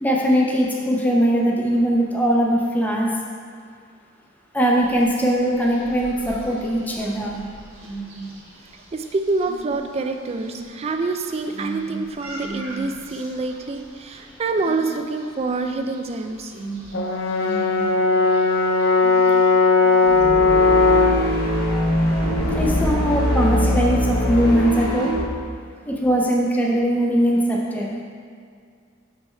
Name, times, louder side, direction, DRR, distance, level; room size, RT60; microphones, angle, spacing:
voice 1, 0.0-3.1 4.5-7.4 22.6-25.1 25.9-28.0, equal, 10° left, -3 dB, 0.7 m, -20 dB
sound 1, 4.7-20.2, right 2 dB, 90° right, 1.5 m, -38 dB
voice 2, 8.9-16.5 21.2-21.3, right 3 dB, 30° right, 5 dB, 0.3 m, -26 dB
Brass instrument, 16.9-21.2, left 3 dB, 70° left, 0.6 m, -17 dB
sound 2, 20.0-25.3, equal, 50° left, 1.3 m, -22 dB
6.2 x 3.5 x 5.3 m, 2.3 s
head